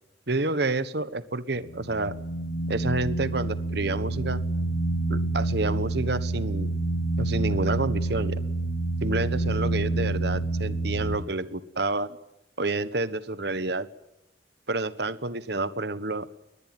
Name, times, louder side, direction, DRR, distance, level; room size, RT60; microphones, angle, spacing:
voice 1, 0.3-2.2 2.7-4.4 5.1-6.7 7.2-8.4 9.0-12.2 12.6-13.9 14.7-16.3, right 2 dB, 60° right, 15 dB, 1.3 m, -29 dB
sound 1, 1.7-11.2, right 2 dB, 85° left, 3.8 m, -28 dB
22.0 x 20.5 x 9.3 m, 0.89 s
head